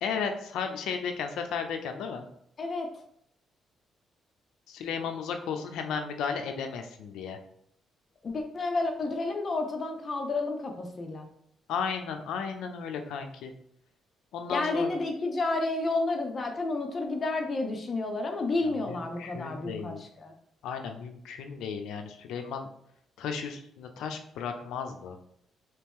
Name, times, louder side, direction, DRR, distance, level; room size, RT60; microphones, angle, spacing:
voice 1, 0.0-2.2 4.7-7.4 11.7-13.5 14.3-15.0 18.6-20.0 20.6-22.7 23.2-25.2, left 6 dB, 85° left, 5 dB, 0.4 m, -34 dB
voice 2, 8.2-11.3 14.5-20.3, left 2 dB, 40° left, 3 dB, 0.6 m, -30 dB
3.0 x 2.9 x 3.5 m, 0.70 s
cardioid pair, 90°, 0 cm